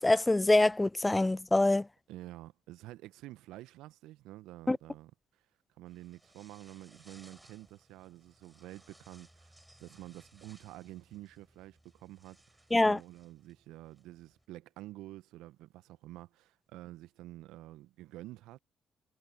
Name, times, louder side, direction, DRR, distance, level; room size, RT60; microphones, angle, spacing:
voice 1, 0.0-1.9 4.7-4.8 12.7-13.0, left 2 dB, 15° left, 0.4 m, -25 dB
voice 2, 2.1-5.1 5.8-18.6, right 16 dB, 70° right, 1.5 m, -49 dB
sound 1, 5.9-14.5, right 1 dB, 10° right, 7.9 m, -62 dB
figure-of-eight pair, 45°, 0 cm